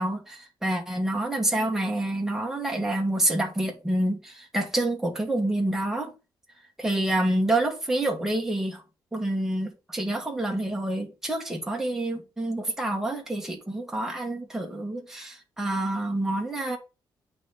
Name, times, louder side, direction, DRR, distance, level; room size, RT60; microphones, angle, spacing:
voice 1, 0.0-6.1 6.8-8.8 9.1-16.8, right 1 dB, 5° right, 1.5 m, -27 dB
8.3 x 3.6 x 4.1 m
cardioid pair, 170°, 8 cm